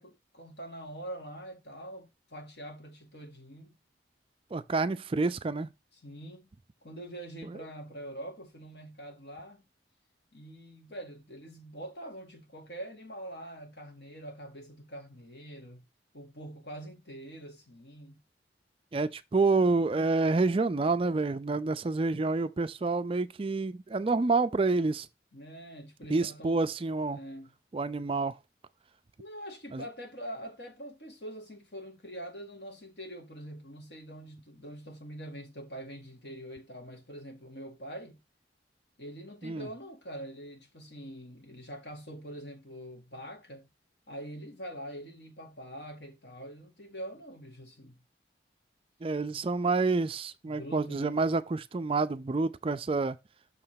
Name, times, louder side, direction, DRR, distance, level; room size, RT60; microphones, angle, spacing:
voice 1, 0.0-3.8 5.9-6.5 6.8-9.6 10.3-15.9 16.1-18.2 25.3-26.6 27.1-27.5 29.2-38.2 39.0-43.7 44.1-48.0 50.5-51.2, right 1 dB, 70° left, 2.0 m, -44 dB
voice 2, 4.5-5.7 7.4-7.6 18.9-25.1 26.1-27.2 27.7-28.3 29.7-29.8 39.4-39.7 49.0-53.2, right 3 dB, 30° right, 0.4 m, -28 dB
6.4 x 3.3 x 5.7 m
head